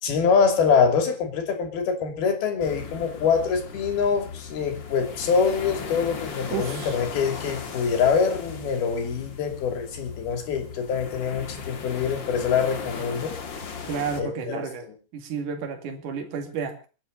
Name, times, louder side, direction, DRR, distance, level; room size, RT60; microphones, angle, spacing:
voice 1, 0.0-13.4 14.2-14.6, left 6 dB, 70° left, 6 dB, 4.7 m, -24 dB
sound 1, 2.6-14.2, left 6 dB, 45° left, 1.7 m, -37 dB
voice 2, 6.5-6.9 13.9-14.9 15.1-16.9, right 6 dB, 55° right, 5 dB, 3.6 m, -31 dB
29.0 x 10.0 x 4.0 m, 0.35 s
omnidirectional pair, 4.5 m